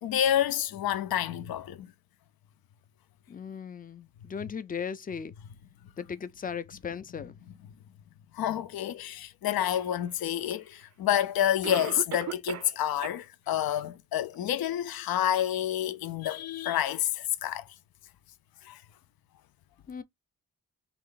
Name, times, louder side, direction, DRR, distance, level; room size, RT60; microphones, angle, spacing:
voice 1, 0.0-1.9 8.3-17.6 18.6-18.8, left 11 dB, 90° left, 0.5 m, -29 dB
voice 2, 3.3-5.3 6.0-7.3 19.9-20.0, left 6 dB, 25° left, 0.3 m, -37 dB
Cough, 10.5-10.6 11.6-12.8 13.0-13.1 13.7-13.8 14.3-14.4, right 10 dB, 50° right, 0.4 m, -36 dB
3.4 x 2.5 x 3.7 m
cardioid pair, 95°, 35 cm